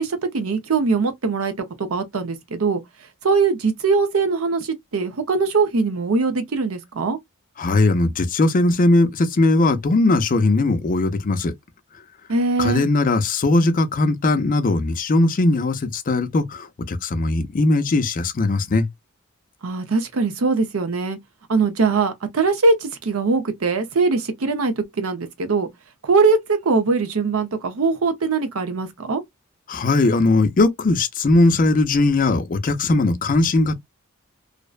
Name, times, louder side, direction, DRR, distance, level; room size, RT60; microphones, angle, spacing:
voice 1, 0.0-1.5 1.8-2.8 3.2-7.2 12.3-12.8 19.6-21.2 21.5-25.7 26.0-29.2, right 4 dB, 75° right, 0.6 m, -21 dB
voice 2, 7.6-11.5 12.6-18.9 29.7-33.8, left 2 dB, 40° left, 0.5 m, -19 dB
2.6 x 2.1 x 2.3 m
head